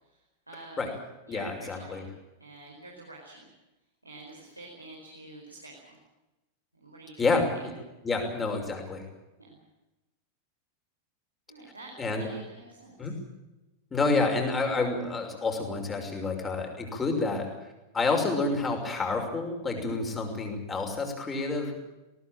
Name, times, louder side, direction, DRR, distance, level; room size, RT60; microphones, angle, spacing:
voice 1, 0.5-0.9 1.3-2.0 2.4-3.5 4.0-6.0 6.7-7.3 7.5-7.6 8.3-8.4 9.4-9.6 11.5-11.9 12.2-12.9, right 2 dB, 85° right, -1 dB, 4.7 m, -47 dB
voice 2, 1.3-2.1 7.2-7.7 8.0-9.0 12.0-12.3 13.0-13.2 13.9-17.5 17.9-21.7, left 3 dB, 15° left, 3 dB, 5.9 m, -29 dB
20.5 x 18.5 x 8.9 m, 1.0 s
figure-of-eight pair, 90°, 0 cm